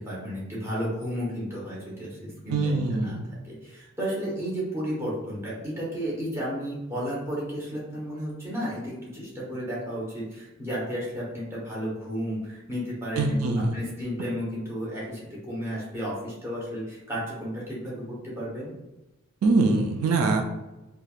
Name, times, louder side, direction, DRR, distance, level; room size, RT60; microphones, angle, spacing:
voice 1, 0.1-3.2 3.5-18.7, equal, 10° right, -6 dB, 0.8 m, -33 dB
voice 2, 2.5-3.3 13.2-13.8 19.4-20.4, right 3 dB, 75° right, 3 dB, 0.3 m, -23 dB
3.2 x 2.3 x 2.3 m, 1.0 s
head